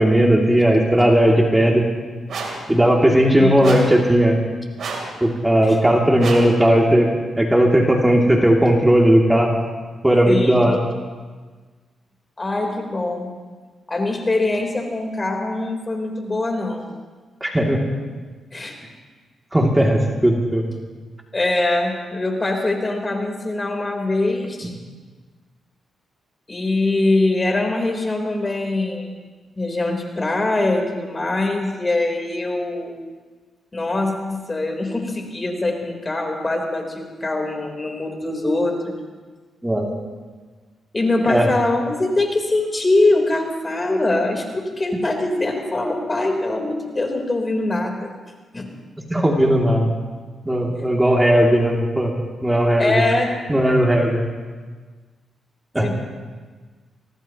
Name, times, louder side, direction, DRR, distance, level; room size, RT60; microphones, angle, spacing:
voice 1, 0.0-1.8 2.7-4.4 5.2-7.1 7.4-9.5 10.0-10.8 17.4-17.8 19.5-20.7 39.6-39.8 41.3-41.5 49.1-49.9 50.5-52.1 52.4-52.9 53.5-54.2 55.7-55.9, right 1 dB, 10° right, -1 dB, 2.7 m, -16 dB
sound 1, 2.3-2.7 3.6-4.0 4.8-5.2 6.2-6.6, right 4 dB, 70° right, 3.6 m, -29 dB
voice 2, 3.4-3.8 5.7-5.8 10.2-10.8 12.4-13.3 13.9-16.9 18.5-18.8 21.3-24.7 26.5-29.1 29.6-33.0 33.7-39.0 40.9-48.1 48.5-48.7 52.8-53.4 55.8-55.9, left 2 dB, 30° left, 2 dB, 3.8 m, -23 dB
24.5 x 18.5 x 3.0 m, 1.4 s
cardioid pair, 65°, 0 cm